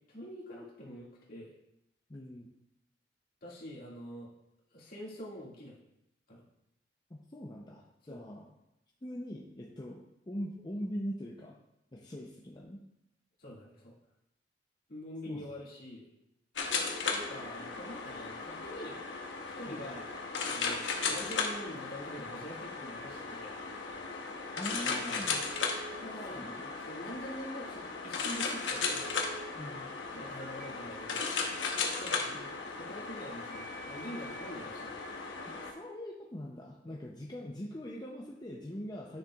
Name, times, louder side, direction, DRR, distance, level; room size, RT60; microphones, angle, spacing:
voice 1, 0.1-1.6 3.4-4.3 4.7-5.8 6.3-6.4 8.0-8.2 13.4-13.9 14.9-16.1 17.1-19.0 19.6-20.1 20.5-23.7 24.8-25.4 26.0-26.4 26.8-29.2 30.1-31.4 32.0-34.9 36.9-37.0, equal, 55° left, -5 dB, 2.0 m, -45 dB
voice 2, 2.1-2.5 7.1-8.5 9.0-11.6 11.9-12.8 15.3-15.4 19.7-20.0 24.6-25.4 26.3-26.7 29.5-29.9 35.5-39.2, equal, 25° left, -2 dB, 0.6 m, -42 dB
sound 1, 16.6-35.7, left 4 dB, 90° left, 1.0 m, -36 dB
Telephone, 25.5-26.0 29.0-29.5 30.4-30.7 31.9-32.2 33.5-34.5, right 3 dB, 50° right, 0.7 m, -49 dB
10.0 x 6.6 x 2.4 m, 0.84 s
head